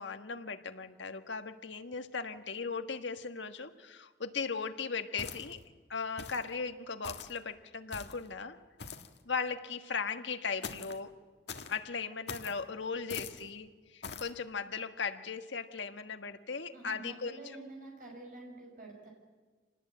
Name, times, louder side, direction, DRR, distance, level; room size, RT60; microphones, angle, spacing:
voice 1, 0.0-5.6 5.9-8.6 9.2-11.1 11.7-17.4, left 5 dB, 80° left, 8 dB, 1.6 m, -38 dB
sound 1, 5.2-5.7 6.2-6.5 7.0-7.4 7.9-8.3 8.8-9.2 10.6-11.0 11.5-11.8 12.3-12.6 13.1-13.4 14.0-14.3, left 5 dB, 65° left, 1.8 m, -43 dB
voice 2, 16.7-19.1, right 2 dB, 45° right, 0 dB, 5.6 m, -48 dB
27.0 x 19.5 x 8.7 m, 1.4 s
head